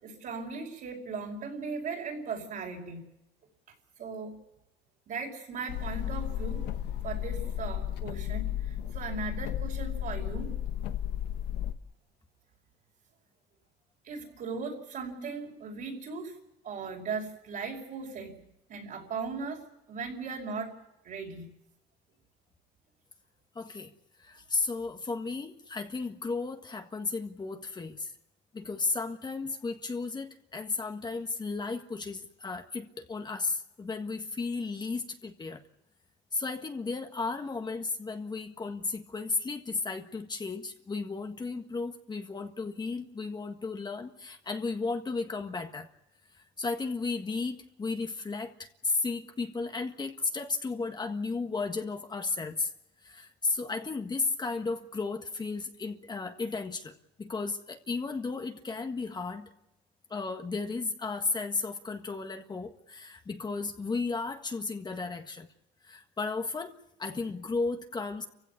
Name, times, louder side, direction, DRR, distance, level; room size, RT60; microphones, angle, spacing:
voice 1, 0.0-3.0 4.0-4.3 5.1-6.7 7.0-10.5 14.0-16.4 16.6-18.4 18.7-19.6 19.9-20.7 21.0-21.5, right 4 dB, 60° right, -2 dB, 5.3 m, -38 dB
sound 1, 5.7-11.7, left 11 dB, 90° left, 1.2 m, -33 dB
voice 2, 23.5-23.9 24.2-28.1 28.5-35.6 36.3-45.9 46.3-52.7 53.0-56.9 57.2-59.5 60.1-65.5 65.8-68.3, left 3 dB, 25° left, 5 dB, 1.6 m, -34 dB
28.5 x 16.0 x 8.4 m, 0.87 s
cardioid pair, 110°, 17 cm